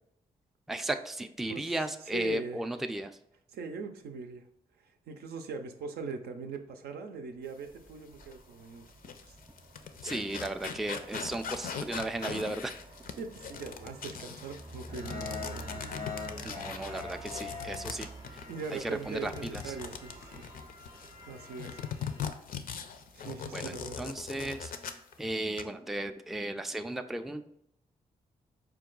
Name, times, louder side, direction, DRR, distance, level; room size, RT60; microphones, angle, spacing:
voice 1, 0.7-3.2 10.0-12.8 16.4-18.4 18.7-19.7 23.5-24.7 25.2-27.5, right 1 dB, ahead, 8 dB, 0.3 m, -35 dB
voice 2, 1.5-1.8 2.1-2.6 3.5-4.4 4.8-8.8 9.2-9.4 13.2-15.8 18.5-20.5 21.2-21.9 23.1-24.1, right 5 dB, 80° right, 6 dB, 0.5 m, -41 dB
Aircraft, 7.4-24.7, right 2 dB, 35° right, 0.6 m, -51 dB
sound 1, 8.2-8.3 8.9-21.1 21.6-25.1 25.4-25.6, left 7 dB, 60° left, 0.4 m, -40 dB
sound 2, 14.9-22.2, left 4 dB, 90° left, 0.9 m, -44 dB
4.6 x 2.2 x 3.7 m, 0.77 s
supercardioid pair, 50°, 16 cm